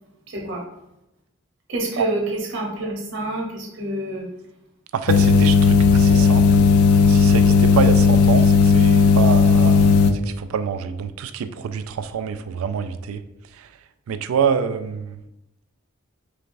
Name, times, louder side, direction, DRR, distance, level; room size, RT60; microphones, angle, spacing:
voice 1, 0.3-0.6 1.7-4.3, right 1 dB, 60° right, -1 dB, 1.0 m, -27 dB
voice 2, 4.9-6.6 7.0-13.2 13.6-13.7 14.1-15.2, right 7 dB, 80° right, 11 dB, 0.3 m, -26 dB
sound 1, 5.1-10.1, left 5 dB, 90° left, 0.4 m, -15 dB
4.8 x 3.3 x 2.6 m, 0.88 s
head